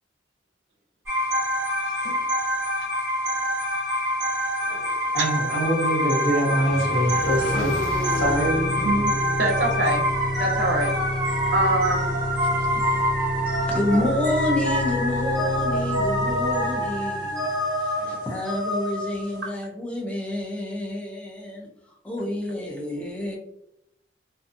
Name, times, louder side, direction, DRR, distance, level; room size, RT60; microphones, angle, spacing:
sound 1, 1.1-19.4, equal, 15° right, 0.9 m, -26 dB
Motorcycle / Engine, 4.6-10.7, equal, 20° left, 1.0 m, -37 dB
voice 1, 5.1-7.8 8.2-8.7, equal, 60° left, -8 dB, 1.4 m, -24 dB
sound 2, 6.7-18.1, left 1 dB, 80° left, 0.8 m, -30 dB
voice 2, 9.4-10.0 10.4-10.9 11.5-12.2 18.1-18.2, right 2 dB, 65° right, 0 dB, 0.6 m, -24 dB
voice 3, 12.6-12.9 13.7-17.5 17.8-21.7 22.0-23.4, left 1 dB, 5° left, -3 dB, 0.5 m, -28 dB
2.6 x 2.3 x 2.6 m, 0.80 s
head